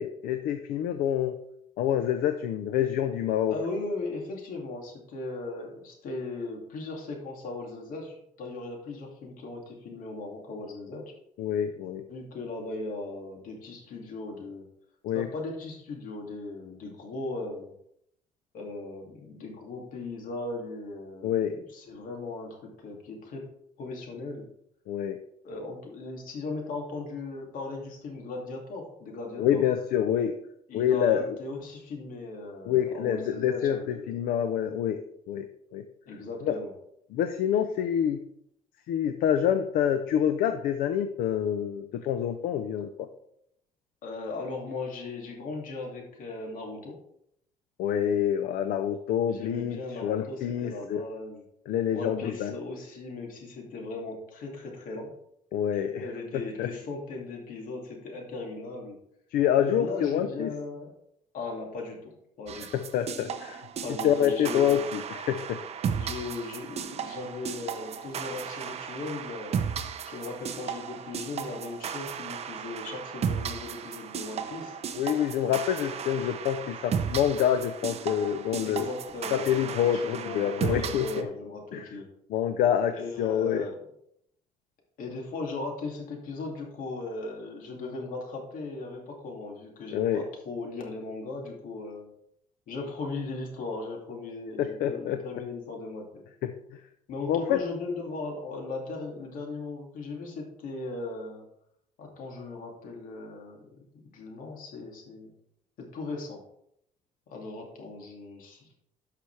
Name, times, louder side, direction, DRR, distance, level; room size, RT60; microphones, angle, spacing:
voice 1, 0.0-1.3 1.8-3.5 11.4-12.0 15.0-15.3 21.2-21.5 24.9-25.2 29.4-30.4 30.7-31.4 32.7-35.0 35.3-35.5 35.7-35.8 36.4-36.6 37.1-38.2 38.9-43.1 47.8-51.0 51.7-52.5 55.5-56.1 56.6-56.7 59.3-60.5 62.7-63.6 64.0-65.6 74.9-78.9 79.3-81.3 81.7-81.8 82.3-83.7 89.9-90.2 94.6-95.2 96.4-96.5 97.3-97.6, left 9 dB, 85° left, 8 dB, 0.6 m, -27 dB
voice 2, 3.5-11.1 12.1-14.7 15.1-17.7 18.5-23.4 23.8-24.5 25.4-29.6 30.7-34.1 36.1-36.7 44.0-47.0 49.3-51.4 51.9-55.1 55.7-59.0 59.5-60.9 61.3-62.1 62.4-62.8 63.8-64.8 65.9-69.6 70.0-74.8 78.6-82.1 82.9-83.8 85.0-92.1 92.7-96.2 97.1-101.4 102.0-103.8 104.1-105.3 105.8-106.4 107.3-108.7, left 3 dB, 70° left, 1 dB, 2.5 m, -38 dB
sound 1, 62.5-81.2, right 7 dB, 45° right, 0.7 m, -35 dB
11.5 x 5.9 x 3.3 m, 0.74 s
cardioid pair, 125°, 15 cm